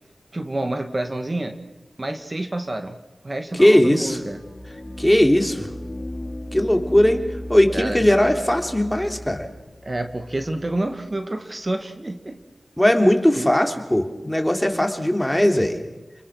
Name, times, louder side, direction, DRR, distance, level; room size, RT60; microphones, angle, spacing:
voice 1, 0.3-1.6 2.0-3.0 3.2-4.4 7.7-8.0 9.8-12.4 13.3-13.5, right 2 dB, 40° right, 6 dB, 2.1 m, -28 dB
voice 2, 3.6-4.2 5.0-5.7 6.5-7.2 7.5-9.5 12.8-15.8, left 1 dB, 10° left, 5 dB, 3.3 m, -18 dB
sound 1, 4.0-11.2, left 1 dB, 30° left, 4.9 m, -36 dB
29.5 x 21.0 x 6.5 m, 1.1 s
cardioid pair, 45°, 0 cm